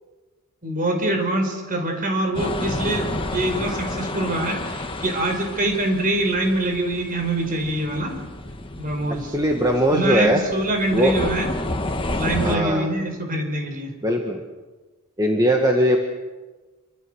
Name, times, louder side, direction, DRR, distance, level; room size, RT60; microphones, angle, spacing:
voice 1, 0.6-8.2 8.8-9.3 9.9-11.5 12.2-13.9, right 1 dB, 40° right, 4 dB, 5.0 m, -24 dB
sound 1, 2.3-12.6, left 1 dB, 25° left, 1.5 m, -30 dB
voice 2, 9.3-10.4 10.9-11.2 12.3-12.9 14.0-14.4 15.2-16.0, equal, 15° right, 2 dB, 1.8 m, -20 dB
28.0 x 24.5 x 6.5 m, 1.2 s
head